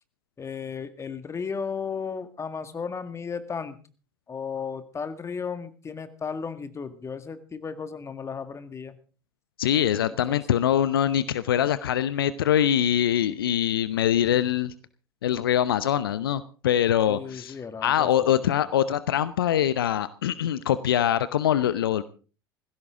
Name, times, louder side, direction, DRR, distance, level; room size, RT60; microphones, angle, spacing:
voice 1, 0.4-3.8 4.3-9.0 10.0-10.6 17.1-18.3, left 6 dB, 25° left, 11 dB, 1.9 m, -35 dB
voice 2, 9.6-14.7 15.2-17.6 17.8-22.0, left 10 dB, 70° left, 15 dB, 0.8 m, -23 dB
18.5 x 16.0 x 3.7 m, 0.38 s
figure-of-eight pair, 75°, 12 cm